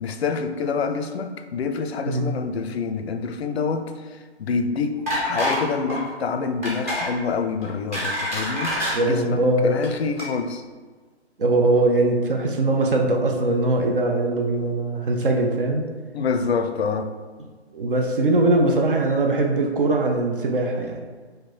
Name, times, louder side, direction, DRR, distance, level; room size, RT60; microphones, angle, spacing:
voice 1, 0.0-5.0 5.2-10.6 16.1-17.1, left 5 dB, 65° left, 7 dB, 0.5 m, -27 dB
voice 2, 2.1-2.4 8.9-9.9 11.4-15.9 17.7-21.0, right 2 dB, 50° right, 2 dB, 0.7 m, -21 dB
sound 1, 5.1-5.6 5.9-6.1 6.6-7.1 7.6-9.0 9.7-9.9 10.2-10.3, equal, 15° right, 0.6 m, -26 dB
4.3 x 2.6 x 4.4 m, 1.4 s
hypercardioid pair, 155°, 34 cm